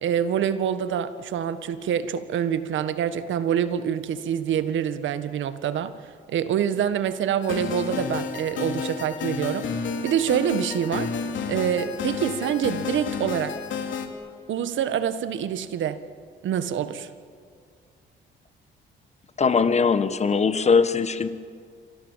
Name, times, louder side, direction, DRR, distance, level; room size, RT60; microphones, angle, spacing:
voice 1, 0.0-5.9 6.3-9.7 10.0-11.1 11.5-13.6 14.5-16.0 16.4-17.1, right 9 dB, 75° right, 12 dB, 1.5 m, -26 dB
sound 1, 7.4-14.1, left 5 dB, 70° left, 3.1 m, -31 dB
voice 2, 19.4-21.3, left 5 dB, 35° left, 12 dB, 1.4 m, -21 dB
28.0 x 25.0 x 7.4 m, 2.2 s
cardioid pair, 90°, 20 cm